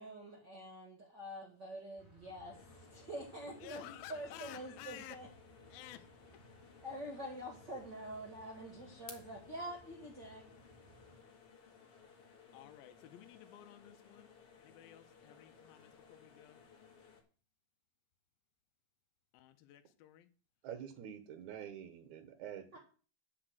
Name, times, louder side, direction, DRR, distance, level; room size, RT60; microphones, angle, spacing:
voice 1, 0.0-5.3 6.8-10.4 22.7-22.8, right 1 dB, 55° right, 1 dB, 1.2 m, -46 dB
sound 1, 2.0-11.2, right 1 dB, 15° left, 2.7 m, -62 dB
sound 2, 2.5-17.2, left 6 dB, 60° left, 1.6 m, -60 dB
voice 2, 3.6-5.3 5.7-6.1 12.5-14.3 14.6-16.6 19.3-20.3, left 13 dB, 80° left, 8 dB, 2.2 m, -53 dB
voice 3, 20.6-22.8, right 9 dB, 80° right, 8 dB, 1.7 m, -47 dB
8.7 x 5.0 x 7.7 m, 0.39 s
omnidirectional pair, 4.9 m